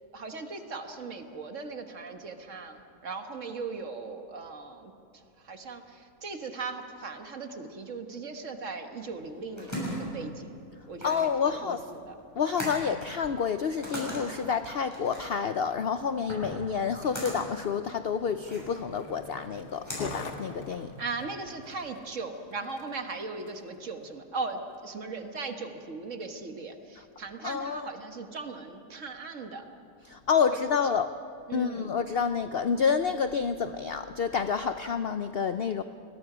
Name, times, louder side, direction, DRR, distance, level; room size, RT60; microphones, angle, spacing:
voice 1, 0.1-10.5 10.9-12.1 21.0-29.6 30.5-30.6 31.5-31.9, right 4 dB, 50° right, 5 dB, 1.7 m, -38 dB
sound 1, 9.1-21.0, equal, 10° left, 6.7 m, -40 dB
voice 2, 11.0-11.8 12.3-20.9 27.0-27.1 27.4-27.9 30.0-31.1 31.5-35.8, left 6 dB, 60° left, 10 dB, 0.6 m, -29 dB
Skateboard, 15.0-23.8 24.4-24.5, left 3 dB, 90° left, 2.0 m, -47 dB
30.0 x 21.0 x 5.0 m, 2.5 s
omnidirectional pair, 1.7 m